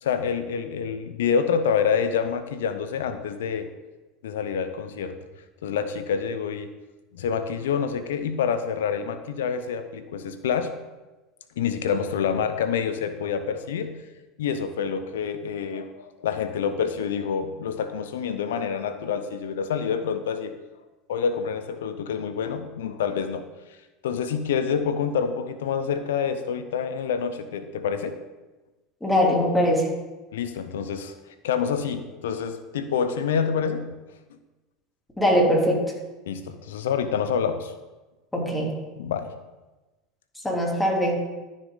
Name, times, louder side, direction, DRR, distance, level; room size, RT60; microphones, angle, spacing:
voice 1, 0.0-3.7 4.2-5.2 5.6-6.7 7.1-10.7 11.6-14.0 14.4-20.5 21.1-23.5 24.0-28.1 30.3-31.2 31.4-33.9 36.3-37.7 39.0-39.3, left 7 dB, 75° left, 10 dB, 0.7 m, -27 dB
voice 2, 29.0-29.9 35.2-35.8 38.3-38.7 40.4-41.2, equal, 10° left, -2 dB, 3.3 m, -21 dB
13.0 x 6.5 x 3.9 m, 1.1 s
hypercardioid pair, 80°, 0 cm